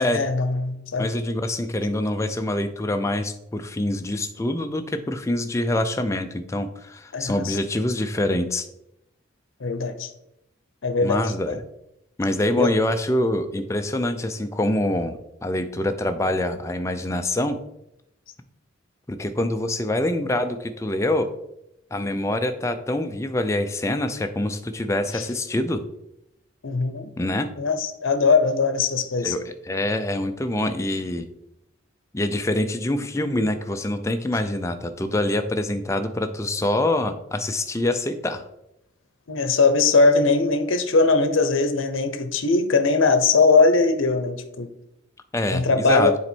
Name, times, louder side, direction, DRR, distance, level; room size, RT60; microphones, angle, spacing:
voice 1, 0.0-1.1 7.1-7.6 9.6-10.1 10.8-11.2 11.5-11.6 12.6-12.7 26.6-27.1 27.6-29.3 39.3-44.7 45.5-46.2, left 3 dB, 80° left, 10 dB, 0.7 m, -20 dB
voice 2, 1.0-8.7 11.0-11.6 12.2-17.6 19.1-21.3 21.9-25.8 27.2-27.5 29.2-31.3 32.1-38.4 45.3-46.1, left 1 dB, 15° left, 7 dB, 0.4 m, -25 dB
7.1 x 4.3 x 4.3 m, 0.84 s
head